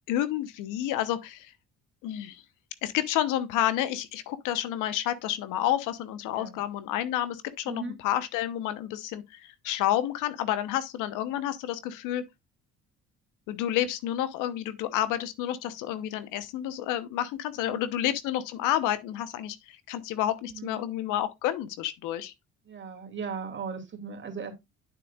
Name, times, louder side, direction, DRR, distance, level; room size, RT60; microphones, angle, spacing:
voice 1, 0.1-1.5 2.0-2.4 2.8-12.2 13.5-22.3, left 12 dB, 80° left, 1.0 m, -30 dB
voice 2, 7.6-8.0 17.6-17.9 20.4-20.8 22.6-24.5, right 5 dB, 40° right, 2.7 m, -37 dB
9.1 x 7.2 x 2.4 m
supercardioid pair, 70°, 31 cm